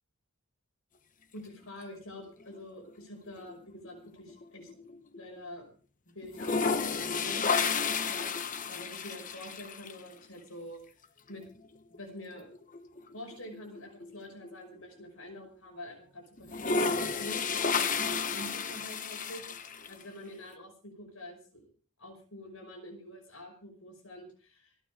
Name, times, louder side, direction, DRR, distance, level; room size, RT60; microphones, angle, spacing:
voice 1, 1.3-4.7 5.2-5.7 6.1-8.3 8.7-10.8 11.3-11.4 11.9-12.5 13.1-19.4 19.9-21.7 22.0-24.7, left 1 dB, 75° left, 3 dB, 5.7 m, -46 dB
sound 1, 2.2-3.0 3.4-5.4 5.6-5.7 6.2-10.0 11.4-11.5 11.9-12.0 12.3-14.7 15.2-15.3 16.4-20.0, left 5 dB, 40° left, 1.0 m, -32 dB
27.0 x 9.4 x 3.5 m, 0.40 s
head